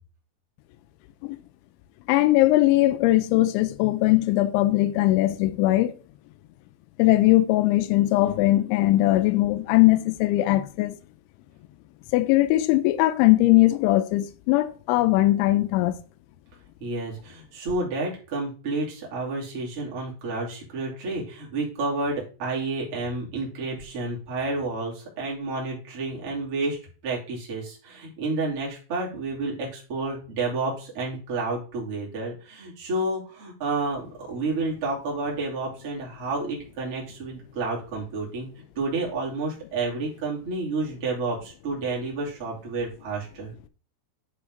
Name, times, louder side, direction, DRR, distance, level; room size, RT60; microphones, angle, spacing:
voice 1, 2.1-5.9 7.0-11.0 12.1-16.0, left 17 dB, 85° left, 2.6 m, -20 dB
voice 2, 16.8-38.5 38.7-43.5, right 3 dB, 35° right, 2.8 m, -30 dB
10.5 x 4.7 x 3.8 m
omnidirectional pair, 6.0 m